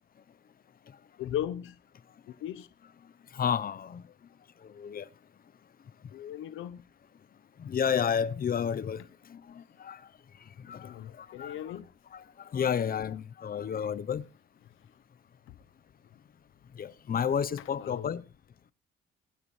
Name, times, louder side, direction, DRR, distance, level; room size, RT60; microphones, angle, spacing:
voice 1, 1.2-1.8 2.4-2.7 6.1-6.8 10.8-11.9 17.8-18.1, left 11 dB, 85° left, 1.0 m, -37 dB
voice 2, 3.3-4.0 4.6-5.1 7.6-9.0 9.3-10.0 10.6-11.8 12.1-14.3 16.7-18.2, left 7 dB, 50° left, 0.9 m, -31 dB
24.0 x 9.7 x 3.3 m
cardioid pair, 90°, 20 cm